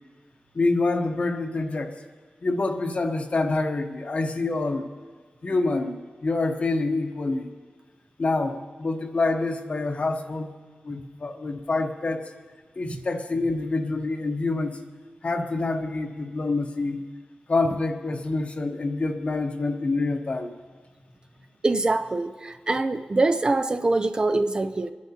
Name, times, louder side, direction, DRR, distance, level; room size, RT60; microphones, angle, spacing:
voice 1, 0.5-2.0 2.4-4.9 5.4-7.5 8.2-10.5 10.8-12.3 12.8-14.8 15.2-17.0 17.5-20.5, left 3 dB, 45° left, 5 dB, 1.0 m, -26 dB
voice 2, 21.6-24.9, right 2 dB, 30° right, 8 dB, 0.5 m, -24 dB
24.0 x 10.5 x 2.8 m, 1.5 s
wide cardioid pair, 125°, 3 cm